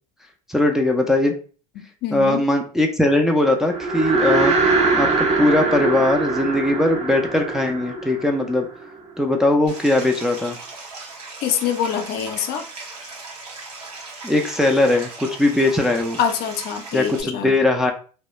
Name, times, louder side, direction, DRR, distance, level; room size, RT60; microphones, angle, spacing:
voice 1, 0.5-1.3 2.1-4.6 4.9-8.7 9.2-10.6 14.2-16.2 16.9-17.9, left 2 dB, ahead, 2 dB, 0.4 m, -20 dB
voice 2, 1.8-2.4 11.4-12.6 16.2-17.6, left 8 dB, 55° left, 6 dB, 0.5 m, -25 dB
sound 1, 3.6-9.1, right 3 dB, 35° right, 0.7 m, -22 dB
Stream, 9.7-17.2, right 3 dB, 90° right, 0.8 m, -38 dB
2.2 x 2.1 x 2.9 m, 0.39 s
hypercardioid pair, 80°, 19 cm